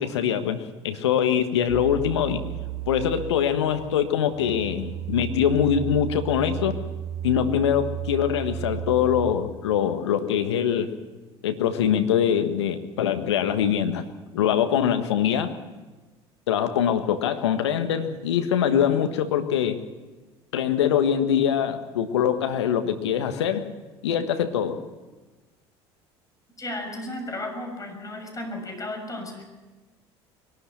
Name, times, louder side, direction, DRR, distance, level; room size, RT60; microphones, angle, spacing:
voice 1, 0.0-2.4 2.9-6.7 7.2-10.9 11.4-14.0 14.3-15.5 16.5-19.8 20.5-23.7 24.0-24.8, left 9 dB, 80° left, 8 dB, 1.4 m, -23 dB
sound 1, 1.7-9.3, right 11 dB, 70° right, 3.6 m, -34 dB
voice 2, 26.6-29.4, left 1 dB, 25° left, 3 dB, 6.6 m, -34 dB
22.5 x 12.5 x 9.9 m, 1.2 s
hypercardioid pair, 65°, 14 cm